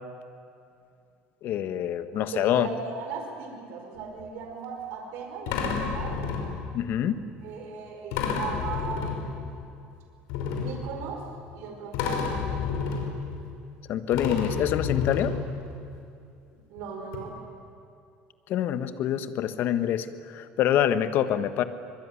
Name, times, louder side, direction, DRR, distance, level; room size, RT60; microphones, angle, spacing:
voice 1, 1.4-2.7 6.7-7.2 13.9-15.3 18.5-21.6, left 10 dB, 55° left, 12 dB, 1.5 m, -26 dB
voice 2, 2.1-6.2 7.4-9.4 10.6-11.2 11.5-12.9 16.7-17.4, right 5 dB, 70° right, 2 dB, 5.2 m, -38 dB
sound 1, 4.0-4.2 5.5-6.8 8.1-9.7 10.3-11.6 11.9-13.8 14.1-15.9 16.8-16.9 17.1-17.2, left 5 dB, 80° left, 5.5 m, -30 dB
24.5 x 23.0 x 9.9 m, 2.5 s
cardioid pair, 135°, 4 cm